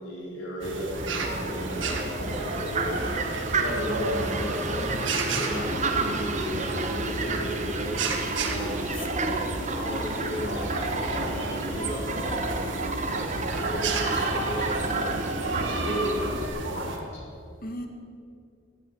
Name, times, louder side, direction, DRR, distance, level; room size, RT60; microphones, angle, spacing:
voice 1, 0.0-3.1 3.6-4.9 5.3-9.0 9.7-12.4 13.0-16.4 16.6-17.2, equal, 90° left, -5 dB, 4.8 m, -34 dB
sound 1, 0.6-17.0, right 3 dB, 90° right, 1.7 m, -33 dB
Fowl, 0.9-16.5, right 3 dB, 40° right, 1.4 m, -31 dB
voice 2, 8.8-9.7 17.6-17.9, left 1 dB, 50° left, 4 dB, 1.7 m, -38 dB
14.5 x 12.0 x 7.1 m, 2.3 s
head